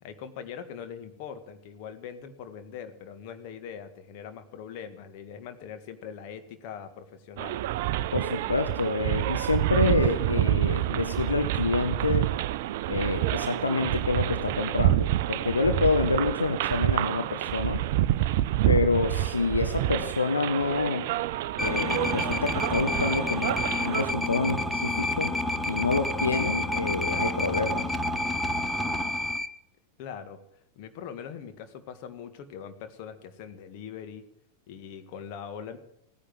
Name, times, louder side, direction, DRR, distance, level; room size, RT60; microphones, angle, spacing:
voice 1, 0.0-7.6 30.0-30.4 30.8-34.3 34.7-35.8, left 7 dB, 45° left, 8 dB, 1.8 m, -42 dB
sound 1, 7.4-24.1, right 14 dB, 50° right, 0.5 m, -28 dB
voice 2, 8.1-12.3 12.9-17.8 18.7-21.0 21.6-23.6 23.8-25.4 25.7-28.0, left 3 dB, 80° left, 8 dB, 1.0 m, -27 dB
sound 2, 21.6-29.5, left 1 dB, 5° left, 1.1 m, -29 dB
16.5 x 10.0 x 7.8 m, 0.75 s
figure-of-eight pair, 90°, 0 cm